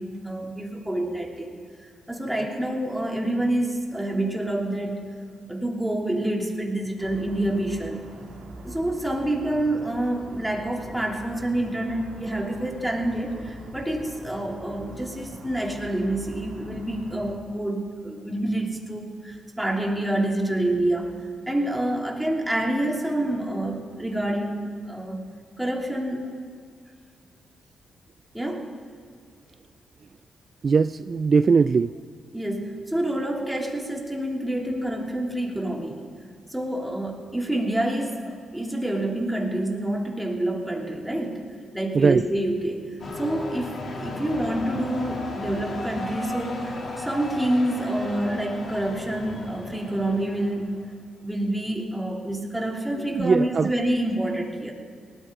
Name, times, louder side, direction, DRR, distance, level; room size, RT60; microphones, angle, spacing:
voice 1, 0.0-5.1 5.5-8.0 8.6-21.2 21.5-25.2 25.6-26.3 28.3-28.7 32.3-36.0 36.5-41.5 41.7-42.9 43.2-50.8 51.2-54.7, right 1 dB, 5° right, 0 dB, 2.8 m, -27 dB
sound 1, 7.0-17.3, right 1 dB, 70° right, 2.6 m, -43 dB
voice 2, 30.6-32.0 41.9-42.2 53.1-53.7, right 5 dB, 50° right, 12 dB, 0.3 m, -20 dB
sound 2, 43.0-50.9, left 2 dB, 55° left, 2.6 m, -35 dB
19.0 x 13.5 x 3.7 m, 2.1 s
cardioid pair, 65°, 0 cm